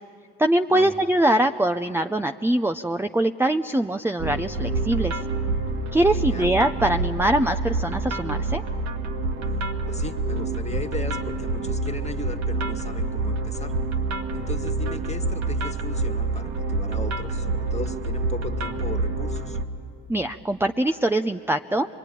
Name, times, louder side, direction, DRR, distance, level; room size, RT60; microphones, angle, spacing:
voice 1, 0.4-5.2 5.9-8.6 20.1-21.9, right 1 dB, 10° right, 6 dB, 0.7 m, -23 dB
sound 1, 4.2-19.6, right 3 dB, 65° right, 1.9 m, -27 dB
voice 2, 6.1-6.5 9.9-13.7 14.3-19.6, left 3 dB, 25° left, 5 dB, 1.9 m, -37 dB
25.0 x 22.0 x 9.9 m, 2.4 s
supercardioid pair, 55°, 29 cm